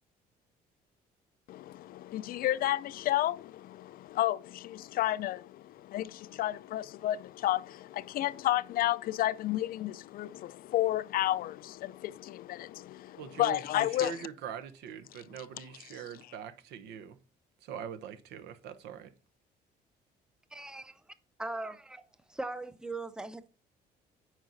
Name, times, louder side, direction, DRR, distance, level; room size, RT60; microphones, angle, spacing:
voice 1, 1.5-14.3 15.6-15.7, left 14 dB, 60° left, 0.4 m, -32 dB
voice 2, 13.1-17.2 17.6-19.1, right 8 dB, 85° right, 1.0 m, -43 dB
voice 3, 20.5-21.0 21.4-23.5, right 2 dB, 5° right, 0.6 m, -40 dB
8.8 x 4.8 x 3.9 m
cardioid pair, 110°, 17 cm